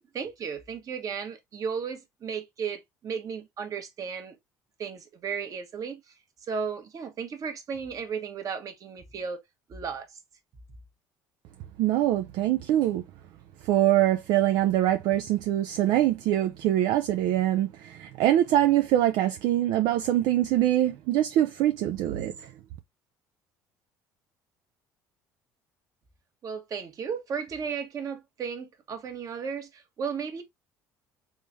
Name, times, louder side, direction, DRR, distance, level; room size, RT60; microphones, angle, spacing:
voice 1, 0.1-4.4 4.8-6.1 6.5-9.4 9.7-10.2 10.7-10.8 26.4-30.4, right 6 dB, 45° right, 1.3 m, -35 dB
voice 2, 11.8-13.0 13.6-22.3, right 13 dB, 70° right, 0.4 m, -24 dB
3.6 x 3.4 x 2.6 m
hypercardioid pair, 75°, 8 cm